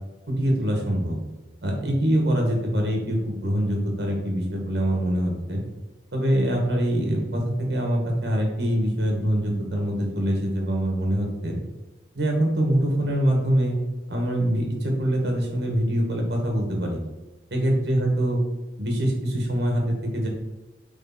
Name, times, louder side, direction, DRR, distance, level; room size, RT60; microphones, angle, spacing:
voice 1, 0.3-1.2 1.6-5.6 6.1-11.6 12.1-13.7 14.1-17.0 17.5-18.4 18.8-20.3, equal, 65° right, 1 dB, 1.8 m, -24 dB
8.1 x 3.5 x 4.3 m, 1.1 s
head